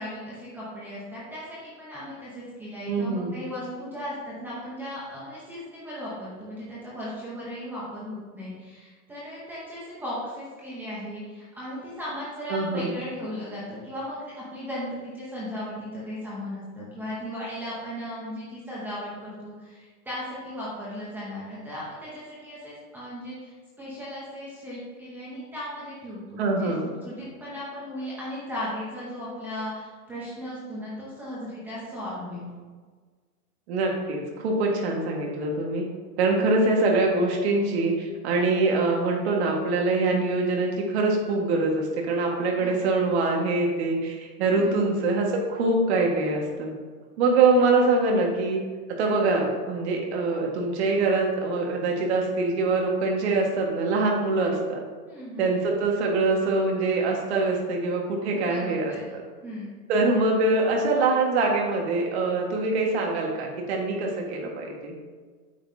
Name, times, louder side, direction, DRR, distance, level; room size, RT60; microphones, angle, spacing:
voice 1, 0.0-26.7 27.0-32.5 42.6-43.1 44.6-44.8 55.1-55.5 58.5-59.1 59.4-59.7, equal, 5° right, -8 dB, 0.7 m, -36 dB
voice 2, 2.9-3.4 12.5-12.9 26.4-26.9 33.7-35.8 36.2-46.7 47.2-48.6 49.0-54.8 55.4-59.2 59.9-65.0, right 3 dB, 40° right, 0 dB, 1.7 m, -24 dB
9.1 x 6.8 x 2.7 m, 1.5 s
hypercardioid pair, 165°, 47 cm